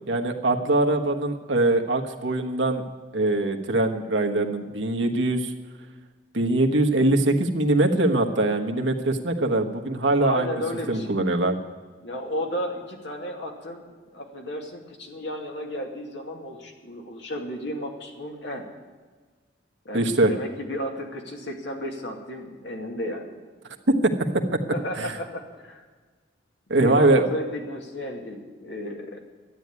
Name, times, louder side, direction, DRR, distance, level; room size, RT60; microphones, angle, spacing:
voice 1, 0.1-2.8 3.1-5.5 6.3-10.6 10.9-11.6 19.9-20.3 25.0-25.1 26.7-27.2, right 2 dB, 75° right, 3 dB, 1.3 m, -22 dB
voice 2, 10.2-11.2 12.0-13.8 14.1-18.6 19.8-23.3 24.7-25.8 26.8-29.2, left 1 dB, 70° left, 1 dB, 2.4 m, -33 dB
12.5 x 9.5 x 9.6 m, 1.4 s
head